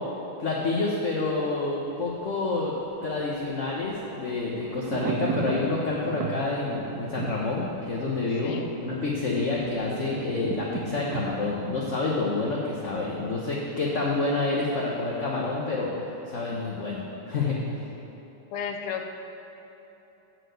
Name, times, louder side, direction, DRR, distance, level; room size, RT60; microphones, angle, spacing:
voice 1, 0.4-2.8 3.0-8.6 8.8-15.9 16.3-17.6, left 3 dB, 50° left, -3 dB, 1.0 m, -28 dB
Thunder, 1.9-12.9 13.2-13.3, right 6 dB, 85° right, 0.8 m, -37 dB
voice 2, 8.4-8.7 18.5-19.1, left 7 dB, 80° left, 5 dB, 1.6 m, -33 dB
12.5 x 4.7 x 7.9 m, 3.0 s
omnidirectional pair, 2.4 m